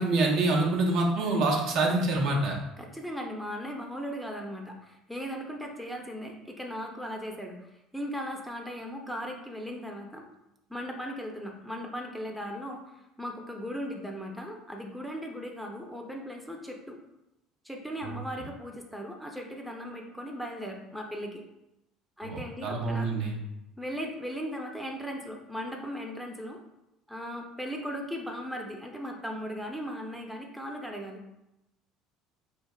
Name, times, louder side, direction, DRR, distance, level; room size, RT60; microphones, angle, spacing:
voice 1, 0.0-2.6 18.0-18.1 22.2-23.4, right 2 dB, 55° right, -1 dB, 0.7 m, -26 dB
voice 2, 2.8-7.6 7.9-10.2 10.7-17.0 17.6-21.4 22.2-23.1 23.8-26.6 27.1-31.2, equal, ahead, 0 dB, 0.6 m, -37 dB
4.4 x 2.7 x 2.3 m, 0.90 s
figure-of-eight pair, 60°, 0 cm